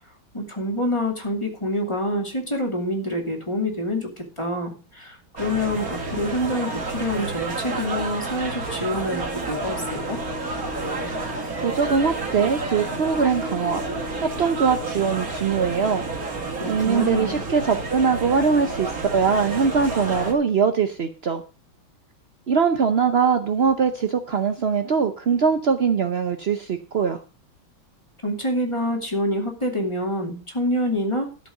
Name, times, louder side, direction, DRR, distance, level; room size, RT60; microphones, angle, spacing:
voice 1, 0.3-10.2 16.6-17.4 28.2-31.5, left 1 dB, 15° left, 2 dB, 2.5 m, -27 dB
sound 1, 5.4-20.3, right 3 dB, 45° right, 2.4 m, -30 dB
Wind instrument woodwind instrument, 9.7-15.2, left 7 dB, 35° left, 1.7 m, -40 dB
voice 2, 11.6-13.8 14.2-16.0 16.7-21.4 22.5-27.2, right 6 dB, 70° right, 7 dB, 0.6 m, -22 dB
12.5 x 5.5 x 6.6 m, 0.34 s
omnidirectional pair, 2.2 m